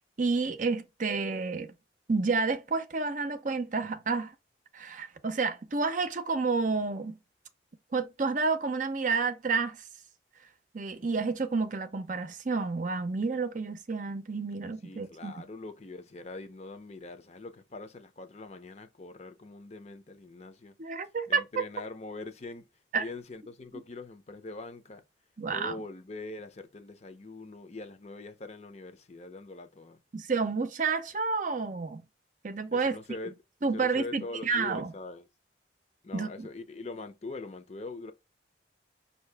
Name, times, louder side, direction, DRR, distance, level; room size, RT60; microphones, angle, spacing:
voice 1, 0.2-1.7 2.1-4.3 4.7-7.2 7.9-9.8 10.7-15.3 20.8-21.4 22.9-23.0 25.4-25.7 30.1-32.0 32.4-33.0 33.6-34.9 36.1-36.5, right 4 dB, 45° right, 0.6 m, -30 dB
voice 2, 14.8-20.7 21.3-22.7 23.0-25.0 25.5-30.0 32.7-33.3 33.7-35.3 36.0-38.1, left 3 dB, 40° left, 0.6 m, -43 dB
5.5 x 2.8 x 3.4 m
head